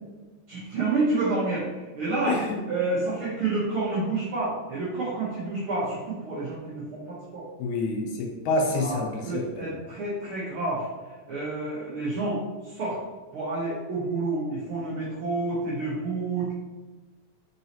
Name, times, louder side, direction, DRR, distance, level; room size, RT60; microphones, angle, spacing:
voice 1, 0.5-2.4 2.7-7.5 8.8-10.9 11.3-13.0 13.3-16.5, right 3 dB, 65° right, -9 dB, 1.4 m, -29 dB
voice 2, 2.3-2.6 7.6-9.6, left 2 dB, 80° left, 1 dB, 2.1 m, -27 dB
4.6 x 4.0 x 2.8 m, 1.2 s
omnidirectional pair, 3.5 m